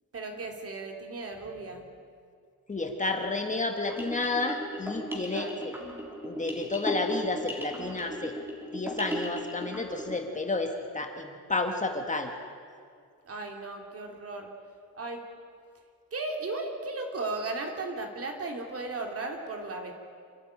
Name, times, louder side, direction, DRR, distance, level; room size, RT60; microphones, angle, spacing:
voice 1, 0.1-1.9 5.3-5.6 13.2-14.5 14.9-15.2 16.1-19.9, right 3 dB, 45° right, 3 dB, 3.0 m, -36 dB
voice 2, 2.7-5.5 6.2-8.3 8.7-12.3, left 3 dB, 20° left, 4 dB, 1.7 m, -31 dB
sound 1, 3.9-10.2, equal, 5° right, 3.6 m, -37 dB
26.5 x 12.0 x 9.9 m, 2.2 s
cardioid pair, 130°, 34 cm